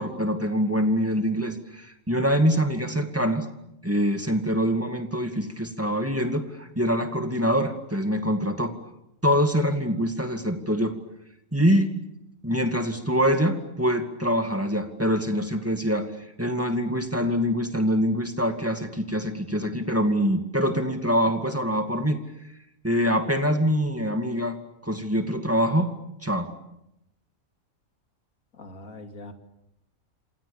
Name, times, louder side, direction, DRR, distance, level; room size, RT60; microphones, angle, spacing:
voice 1, 0.0-3.5 3.8-8.7 9.2-10.9 11.5-11.9 12.4-16.1 16.4-22.2 22.8-24.6 24.8-26.0 26.2-26.5, equal, 10° right, 6 dB, 2.2 m, -24 dB
voice 2, 28.5-29.3, left 2 dB, 70° left, 6 dB, 3.0 m, -42 dB
28.0 x 27.5 x 7.2 m, 0.84 s
omnidirectional pair, 1.5 m